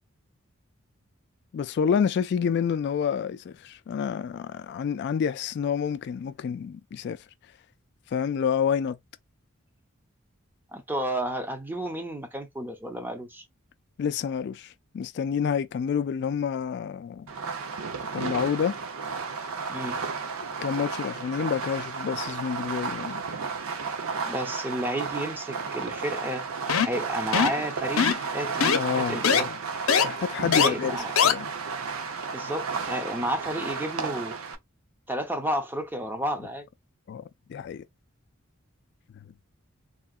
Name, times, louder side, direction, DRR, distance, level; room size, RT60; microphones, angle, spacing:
voice 1, 1.5-7.2 8.1-9.0 14.0-17.3 18.1-18.8 20.6-23.3 28.7-29.6 30.0-31.0 31.2-31.5 37.1-37.2 37.5-37.8, left 7 dB, 55° left, 0.3 m, -28 dB
voice 2, 10.7-13.4 19.7-20.0 24.3-26.5 26.8-28.1 28.3-29.5 30.6-31.1 32.3-34.4 35.1-36.6, right 1 dB, 10° right, 0.6 m, -31 dB
Fireworks, 17.3-34.5, right 5 dB, 85° right, 0.7 m, -33 dB
sound 1, 26.7-27.0 27.3-27.6 28.0-28.3 28.6-28.8 29.2-29.4 29.9-30.0 30.5-30.7 31.2-31.3, left 7 dB, 75° left, 0.7 m, -21 dB
3.7 x 2.2 x 2.4 m
head